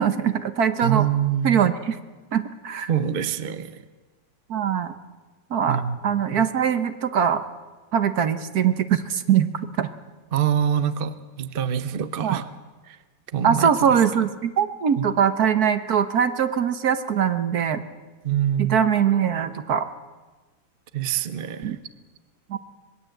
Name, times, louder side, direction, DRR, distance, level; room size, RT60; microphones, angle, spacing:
voice 1, 0.0-1.0 1.4-2.0 2.3-2.9 4.5-4.9 5.5-7.4 7.9-9.5 9.8-9.9 12.2-12.4 13.4-17.8 18.6-19.9 21.6-21.8 22.5-22.6, right 8 dB, 60° right, 10 dB, 1.5 m, -22 dB
voice 2, 0.8-1.7 2.9-3.8 5.7-6.5 10.3-12.5 12.9-13.0 13.3-14.0 15.0-15.1 18.2-18.8 20.9-21.8, right 9 dB, 40° right, 11 dB, 0.8 m, -25 dB
25.5 x 20.5 x 7.9 m, 1.3 s
omnidirectional pair, 1.9 m